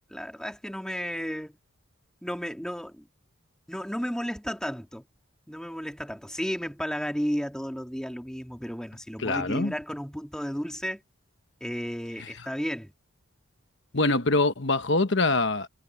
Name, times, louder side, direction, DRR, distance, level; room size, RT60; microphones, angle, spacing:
voice 1, 0.1-1.6 2.2-3.1 3.7-5.1 5.5-11.0 11.6-12.9, equal, 5° left, 2.0 m, -33 dB
voice 2, 9.2-9.7 13.9-15.7, left 2 dB, 55° left, 1.3 m, -24 dB
head